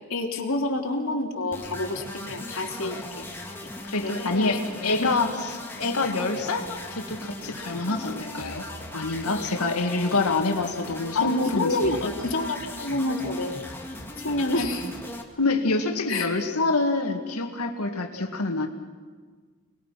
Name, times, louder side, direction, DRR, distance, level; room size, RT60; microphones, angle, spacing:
voice 1, 0.1-3.3 4.0-5.1 11.1-13.6 14.2-14.9 16.1-16.3 18.1-18.3, left 2 dB, 65° left, 1 dB, 3.3 m, -28 dB
sound 1, 1.5-15.2, left 1 dB, 10° left, 2.0 m, -38 dB
voice 2, 3.8-5.3 5.8-8.6 8.9-11.8 12.0-12.1 14.6-14.7 15.4-18.7, left 3 dB, 85° left, 3 dB, 2.2 m, -26 dB
29.0 x 20.5 x 6.0 m, 1.4 s
head